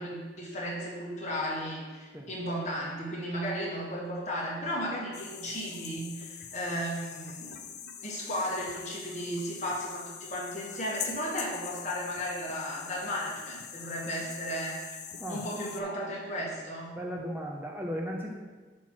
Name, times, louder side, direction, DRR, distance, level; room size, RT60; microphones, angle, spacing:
voice 1, 0.0-7.6 7.8-14.8 15.3-17.0, equal, 40° left, -3 dB, 1.5 m, -35 dB
sound 1, 5.1-15.8, left 8 dB, 60° left, 0.5 m, -43 dB
voice 2, 17.0-18.3, equal, 10° right, 0 dB, 0.5 m, -36 dB
8.4 x 3.0 x 6.0 m, 1.4 s
head